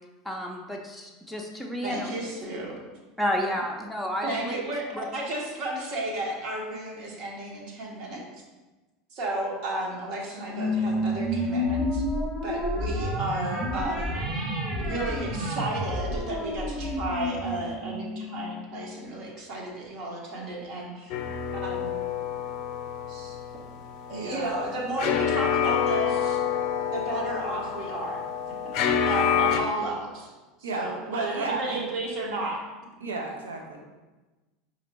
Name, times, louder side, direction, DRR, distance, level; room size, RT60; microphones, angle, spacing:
voice 1, 0.2-2.3 3.2-4.6 4.9-5.0, equal, ahead, -1 dB, 0.5 m, -31 dB
voice 2, 1.8-2.8 4.2-8.2 9.1-12.0 12.4-14.1 14.8-21.1 21.5-21.9 23.1-23.4 24.1-26.4 26.9-28.2 28.7-30.3 30.7-32.6, right 2 dB, 55° right, -2 dB, 0.9 m, -33 dB
sound 1, 10.5-19.3, left 1 dB, 25° right, 0.9 m, -30 dB
sound 2, 21.1-29.6, left 8 dB, 55° left, 0.4 m, -28 dB
voice 3, 24.1-24.5 30.6-31.9 33.0-33.8, right 3 dB, 80° right, 2 dB, 0.6 m, -33 dB
5.0 x 2.6 x 3.0 m, 1.2 s
hypercardioid pair, 80°, 0 cm